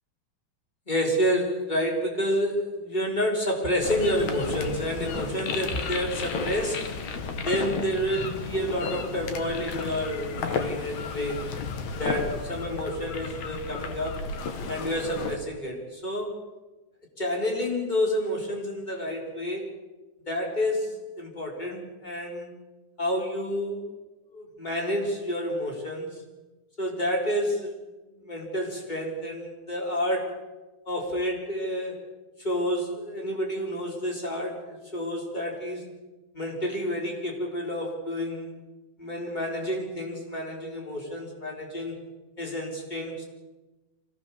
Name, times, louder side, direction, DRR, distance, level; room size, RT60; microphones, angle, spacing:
voice 1, 0.9-6.9 7.4-11.5 12.0-14.3 14.7-16.3 17.2-19.7 20.3-22.5 23.0-23.9 24.3-26.2 26.8-27.8 28.2-30.4 30.9-32.0 32.4-35.8 36.3-38.6 39.0-42.0 42.4-43.2, equal, 10° left, 0 dB, 3.6 m, -29 dB
sound 1, 3.8-15.4, left 5 dB, 65° left, 1.8 m, -33 dB
25.0 x 17.5 x 7.2 m, 1.1 s
omnidirectional pair, 5.5 m